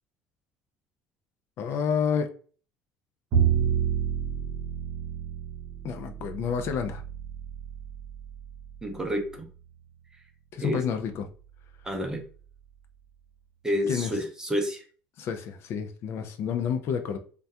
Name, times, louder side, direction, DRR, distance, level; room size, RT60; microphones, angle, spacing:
voice 1, 1.6-2.3 5.8-7.0 10.5-11.2 13.9-14.1 15.2-17.2, left 7 dB, 55° left, 0.4 m, -29 dB
Bowed string instrument, 3.3-9.5, right 8 dB, 60° right, 0.7 m, -30 dB
voice 2, 8.8-9.5 10.6-10.8 11.8-12.2 13.6-14.9, equal, 10° right, 0.6 m, -29 dB
2.2 x 2.2 x 2.6 m
supercardioid pair, 110°, 5 cm